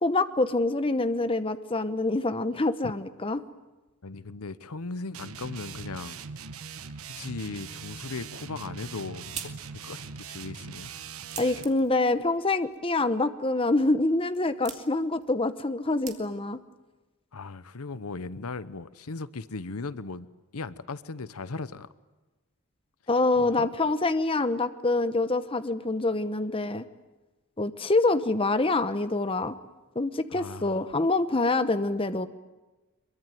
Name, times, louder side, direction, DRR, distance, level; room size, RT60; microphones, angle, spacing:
voice 1, 0.0-3.4 11.4-16.6 23.1-26.8 27.6-29.6 29.9-32.3, left 2 dB, 25° left, 11 dB, 1.0 m, -26 dB
voice 2, 4.0-6.2 7.1-9.6 9.8-10.9 17.3-20.3 20.5-21.9 23.4-23.7 30.3-30.8, left 3 dB, 80° left, 16 dB, 0.9 m, -37 dB
sound 1, 5.1-11.7, right 6 dB, 75° right, 1.2 m, -41 dB
sound 2, 8.7-16.7, right 8 dB, 30° right, 2.4 m, -47 dB
24.5 x 23.0 x 9.3 m, 1.1 s
head